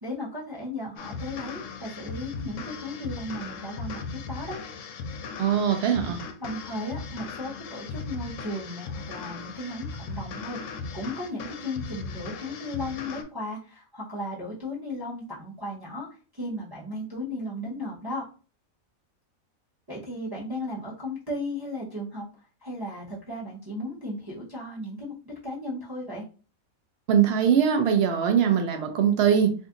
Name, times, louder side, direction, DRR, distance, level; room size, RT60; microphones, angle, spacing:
voice 1, 0.0-4.6 6.4-16.1 16.3-18.2 19.9-22.3 22.6-26.2, left 1 dB, 20° right, -6 dB, 0.9 m, -35 dB
toxik looper, 1.0-13.2, left 4 dB, 70° left, 0.9 m, -38 dB
voice 2, 5.4-6.2 27.1-29.5, right 8 dB, 65° right, 6 dB, 0.6 m, -21 dB
2.6 x 2.6 x 3.6 m, 0.36 s
omnidirectional pair, 1.5 m